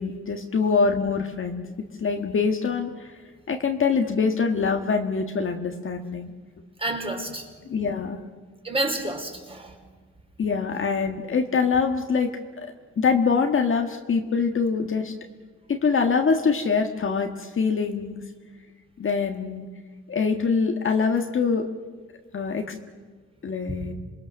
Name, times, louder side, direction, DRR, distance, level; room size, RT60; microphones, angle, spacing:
voice 1, 0.0-1.6 2.0-3.1 3.5-6.3 7.6-8.2 10.4-12.3 12.6-15.1 15.7-18.2 19.0-19.7 20.1-21.7 22.3-22.7 23.4-23.9, left 5 dB, 45° left, 4 dB, 1.7 m, -24 dB
voice 2, 6.8-7.5 8.6-9.8 23.7-23.9, right 2 dB, 20° right, 3 dB, 4.5 m, -29 dB
27.5 x 20.5 x 6.6 m, 1.4 s
cardioid pair, 90°, 30 cm